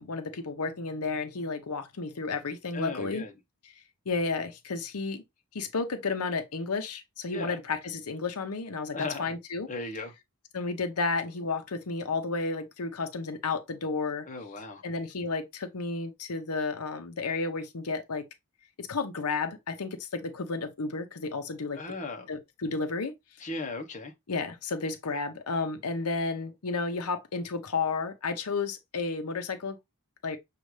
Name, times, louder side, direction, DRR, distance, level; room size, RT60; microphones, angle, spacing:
voice 1, 0.0-3.2 4.1-5.2 5.5-9.7 10.5-14.3 14.8-18.3 18.8-21.8 22.3-23.1 23.4-23.5 24.3-29.8 30.2-30.4, left 4 dB, 90° left, 0.8 m, -32 dB
voice 2, 2.7-3.3 7.3-7.6 8.9-9.3 9.7-10.1 14.3-14.8 21.7-22.3 23.4-24.1, left 3 dB, 35° left, 0.9 m, -37 dB
6.4 x 2.5 x 3.2 m
head